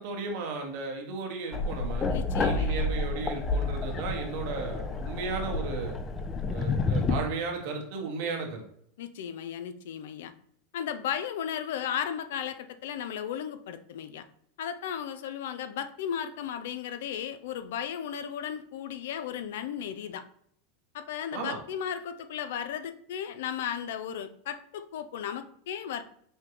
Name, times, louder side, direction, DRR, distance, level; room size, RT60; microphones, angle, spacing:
voice 1, 0.0-2.1 2.4-6.0 6.5-8.6 21.3-21.6, right 4 dB, 65° right, 1 dB, 1.2 m, -35 dB
sound 1, 1.5-7.2, left 3 dB, 25° left, 0.5 m, -29 dB
voice 2, 2.1-2.9 9.0-10.3 10.7-14.2 14.6-20.2 20.9-26.0, left 9 dB, 75° left, 10 dB, 0.4 m, -35 dB
5.5 x 2.2 x 3.0 m, 0.66 s
supercardioid pair, 115°, 0 cm